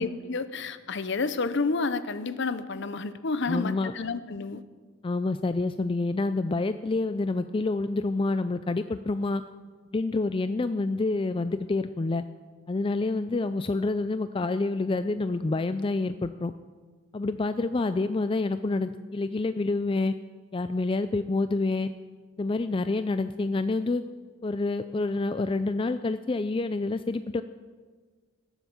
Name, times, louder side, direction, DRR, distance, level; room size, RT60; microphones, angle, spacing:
voice 1, 0.0-4.6, left 3 dB, 55° left, 13 dB, 0.7 m, -30 dB
voice 2, 3.5-3.9 5.0-9.4 9.9-12.2 12.7-16.5 17.1-20.1 20.5-21.9 22.4-24.0 24.4-27.4, left 3 dB, 25° left, 11 dB, 0.3 m, -28 dB
18.0 x 8.1 x 7.1 m, 1.5 s
head